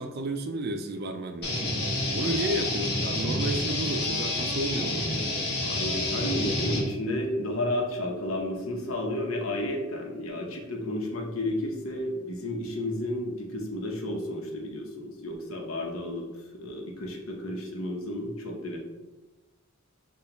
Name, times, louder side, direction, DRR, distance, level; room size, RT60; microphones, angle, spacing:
voice 1, 0.0-1.6 2.1-5.1, right 1 dB, 50° right, 6 dB, 0.4 m, -32 dB
sound 1, 1.4-6.8, left 1 dB, 50° left, 1.2 m, -29 dB
voice 2, 5.6-16.2 16.5-18.8, left 1 dB, 80° left, 0 dB, 0.9 m, -32 dB
6.8 x 2.4 x 3.0 m, 1.1 s
head